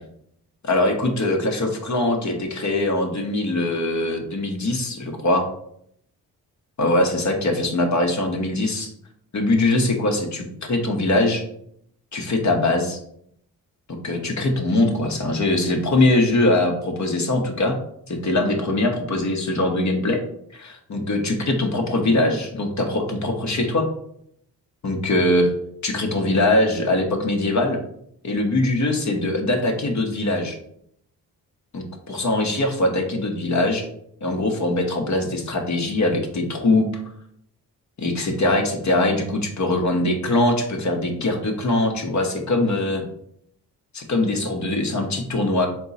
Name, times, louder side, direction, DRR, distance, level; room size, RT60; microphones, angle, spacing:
voice 1, 0.6-5.5 6.8-8.9 9.3-11.4 12.1-13.0 13.9-17.8 18.1-20.2 20.5-23.9 24.8-25.5 25.8-27.8 28.2-30.6 31.7-33.9 34.2-36.9 38.0-43.0 43.9-45.7, left 2 dB, 40° left, 3 dB, 0.9 m, -22 dB
3.7 x 2.3 x 3.9 m, 0.71 s
hypercardioid pair, 40°, 44 cm